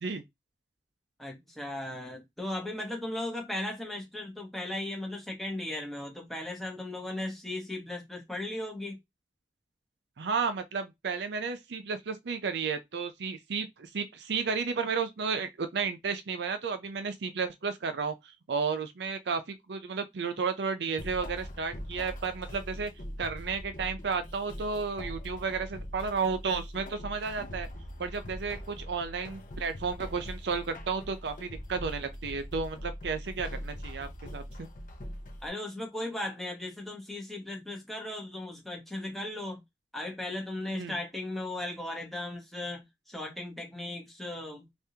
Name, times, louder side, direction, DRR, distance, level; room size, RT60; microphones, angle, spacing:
voice 1, 1.2-9.0 35.4-39.6 39.9-44.7, left 1 dB, ahead, 1.0 m, -37 dB
voice 2, 10.2-18.1 18.5-22.9 23.2-27.7 28.0-34.7 40.7-40.9, right 5 dB, 70° right, 0.5 m, -33 dB
sound 1, 21.0-35.5, equal, 45° left, 0.7 m, -42 dB
3.5 x 2.5 x 2.8 m
head